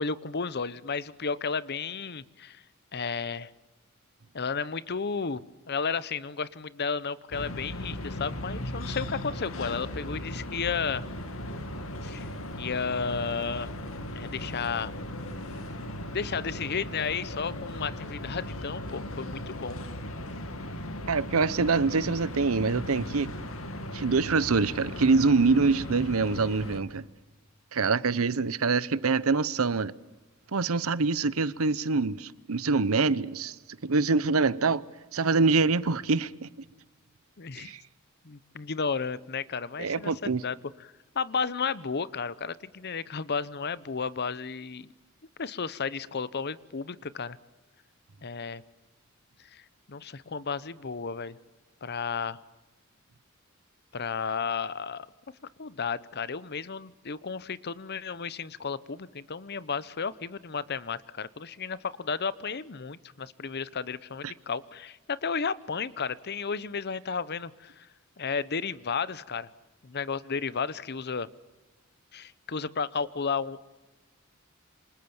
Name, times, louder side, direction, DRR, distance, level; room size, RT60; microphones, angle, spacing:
voice 1, 0.0-2.6 2.9-3.5 4.3-11.1 12.0-12.3 12.6-13.7 14.1-14.9 16.1-19.8 37.4-37.7 38.2-44.9 45.4-47.4 48.2-48.6 49.5-49.6 49.9-51.4 51.8-52.4 53.9-55.1 55.6-67.9 68.2-69.5 69.8-71.3 72.1-73.6, left 5 dB, 50° left, 0.8 m, -33 dB
sound 1, 7.3-26.8, left 1 dB, 75° left, 2.4 m, -37 dB
voice 2, 21.1-23.3 23.9-27.1 27.7-29.9 30.5-33.6 33.8-34.8 35.1-36.5 37.6-37.8 39.8-40.4 64.2-64.3, right 4 dB, 90° right, 0.8 m, -25 dB
28.0 x 26.0 x 7.2 m
head